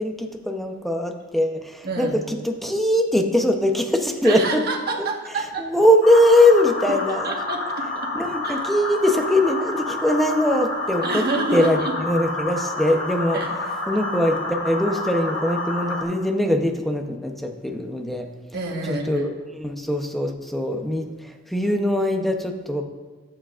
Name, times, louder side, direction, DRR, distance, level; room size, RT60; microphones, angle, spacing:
voice 1, 0.0-4.6 5.0-5.1 5.6-7.3 8.2-11.2 11.5-13.4 13.9-18.3 18.9-22.8, left 1 dB, ahead, 3 dB, 0.7 m, -21 dB
voice 2, 1.8-2.2 4.2-5.7 6.9-8.1 8.4-8.6 11.0-12.0 13.3-13.5 18.5-19.3, right 2 dB, 50° right, 0 dB, 1.4 m, -28 dB
sound 1, 6.0-16.0, left 2 dB, 80° left, 1.7 m, -29 dB
18.5 x 7.5 x 2.5 m, 1.3 s
head